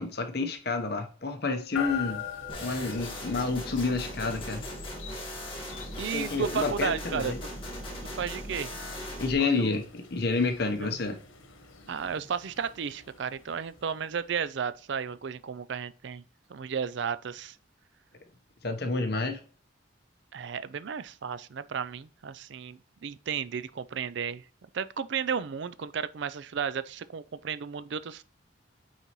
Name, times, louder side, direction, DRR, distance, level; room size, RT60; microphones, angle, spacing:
voice 1, 0.0-2.2 2.6-4.6 6.1-7.4 9.2-11.2 18.6-19.4, left 3 dB, 50° left, 1.0 m, -29 dB
sound 1, 1.8-14.7, left 7 dB, 85° left, 1.3 m, -44 dB
sound 2, 2.5-9.3, equal, 25° left, 1.8 m, -39 dB
voice 2, 6.0-7.3 8.2-8.7 9.4-9.7 10.8-10.9 11.9-16.2 16.5-17.6 20.3-24.4 24.7-28.2, right 7 dB, 65° right, 0.4 m, -33 dB
8.9 x 4.1 x 3.1 m
head